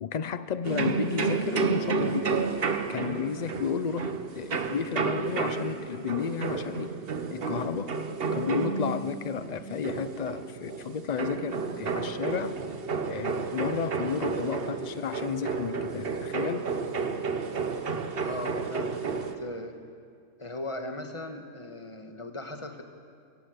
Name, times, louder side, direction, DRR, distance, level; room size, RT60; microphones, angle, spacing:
voice 1, 0.0-2.4 2.9-6.9 7.3-8.0 8.3-12.6 13.1-16.6, left 7 dB, 85° left, 13 dB, 0.3 m, -32 dB
sound 1, 0.6-19.4, right 4 dB, 45° right, 1.2 m, -31 dB
voice 2, 18.2-19.8 20.4-22.8, left 1 dB, 20° left, 5 dB, 1.5 m, -38 dB
24.0 x 16.5 x 8.1 m, 2.3 s
omnidirectional pair, 1.5 m